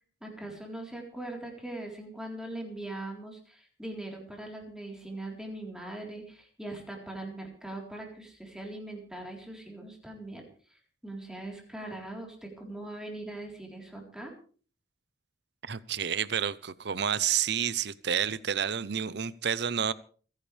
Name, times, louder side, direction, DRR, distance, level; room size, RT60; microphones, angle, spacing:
voice 1, 0.2-10.4 11.0-14.3, right 1 dB, 5° right, 0 dB, 4.0 m, -41 dB
voice 2, 15.6-19.9, right 8 dB, 65° right, 17 dB, 0.7 m, -29 dB
29.5 x 10.5 x 3.4 m, 0.42 s
head